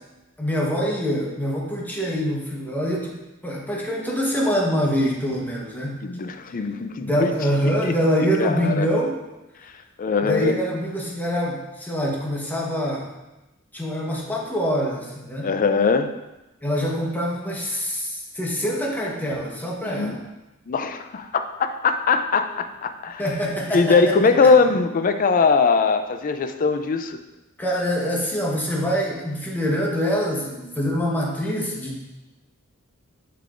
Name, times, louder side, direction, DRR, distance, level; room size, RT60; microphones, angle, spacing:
voice 1, 0.4-3.2 3.4-6.0 7.0-9.2 10.2-13.1 13.7-15.5 16.6-20.2 23.2-24.1 24.4-24.5 27.6-32.1, equal, 10° left, -3 dB, 1.1 m, -25 dB
voice 2, 6.0-7.3 7.8-7.9 8.4-8.9 9.6-9.7 10.0-10.5 15.4-16.2 19.8-20.2 20.7-23.2 23.7-27.2, left 4 dB, 40° left, 8 dB, 0.4 m, -21 dB
6.7 x 6.6 x 2.5 m, 1.0 s
head